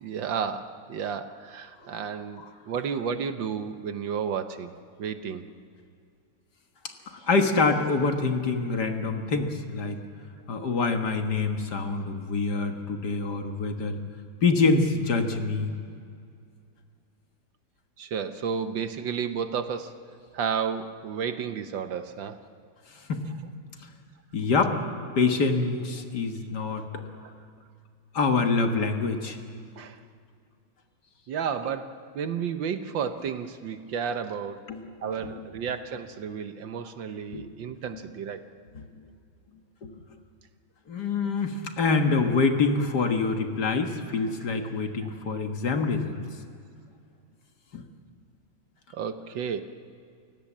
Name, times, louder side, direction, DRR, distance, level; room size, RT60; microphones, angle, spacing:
voice 1, 0.0-4.7 5.0-5.4 18.0-19.9 20.3-22.4 26.9-27.3 29.8-30.0 31.3-34.7 35.0-38.4 48.9-49.6, right 7 dB, 65° right, 9 dB, 1.6 m, -32 dB
voice 2, 7.1-10.0 10.5-14.0 14.4-15.7 23.1-23.2 24.3-24.8 25.2-26.9 28.1-29.4 34.7-34.9 35.2-35.5 37.3-37.5 38.7-38.8 39.8-39.9 40.9-46.2 47.7-47.8, left 4 dB, 55° left, 5 dB, 2.0 m, -26 dB
30.0 x 17.0 x 7.4 m, 2.4 s
omnidirectional pair, 2.3 m